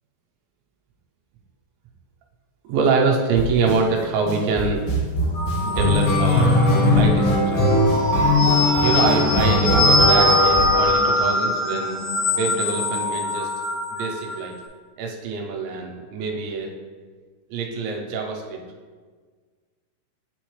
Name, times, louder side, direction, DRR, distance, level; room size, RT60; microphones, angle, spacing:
voice 1, 2.7-4.9 5.6-6.5 7.0-7.7 8.8-12.0 12.3-13.5 13.9-14.5 15.0-16.7 17.5-18.6, right 4 dB, 80° right, 1 dB, 2.9 m, -25 dB
sound 1, 3.4-3.7 4.3-11.4, left 2 dB, 75° left, 3.5 m, -20 dB
sound 2, 5.1-13.0, left 3 dB, 65° right, 1.1 m, -38 dB
sound 3, 5.4-6.8 7.7-14.3, left 1 dB, 55° left, 2.4 m, -22 dB
8.9 x 4.3 x 3.2 m, 1.5 s
omnidirectional pair, 5.6 m